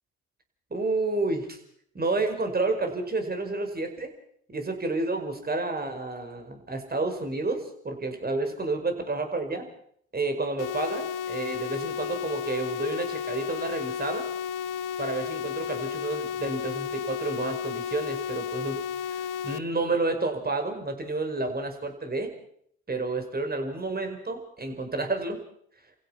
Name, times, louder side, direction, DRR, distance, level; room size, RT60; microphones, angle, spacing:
voice 1, 0.7-1.6 1.9-4.1 4.5-9.6 10.1-14.3 15.0-18.8 19.1-22.3 22.9-25.4, right 3 dB, 25° right, 6 dB, 5.2 m, -30 dB
sound 1, 10.6-19.6, left 8 dB, 65° left, 1.1 m, -33 dB
29.5 x 16.0 x 5.8 m, 0.65 s
hypercardioid pair, 55°, 34 cm